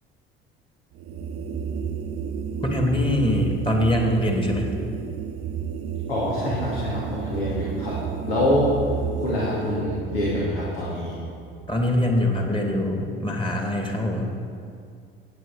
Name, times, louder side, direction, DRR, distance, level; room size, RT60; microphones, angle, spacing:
sound 1, 0.9-12.3, right 7 dB, 45° right, 0.9 m, -32 dB
voice 1, 2.6-4.8 11.7-14.6, left 1 dB, 15° left, 1 dB, 2.4 m, -23 dB
voice 2, 6.1-8.0 8.3-8.7 9.2-11.1, left 1 dB, 70° left, -6 dB, 2.4 m, -25 dB
18.5 x 8.0 x 4.1 m, 2.3 s
figure-of-eight pair, 60°, 30 cm